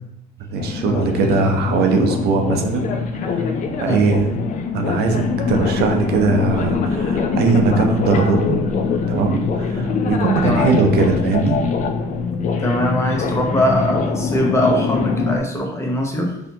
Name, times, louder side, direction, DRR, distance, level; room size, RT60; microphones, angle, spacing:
voice 1, 0.5-4.3 4.7-8.7 9.1-11.6, right 4 dB, 70° right, 3 dB, 0.6 m, -20 dB
sound 1, 0.6-15.4, left 5 dB, 50° left, 0.4 m, -23 dB
sound 2, 4.9-12.7, right 1 dB, 35° right, 0.8 m, -36 dB
voice 2, 10.4-10.8 12.6-16.4, left 1 dB, 15° left, 0 dB, 0.7 m, -21 dB
4.1 x 2.8 x 2.8 m, 0.85 s
cardioid pair, 110°, 17 cm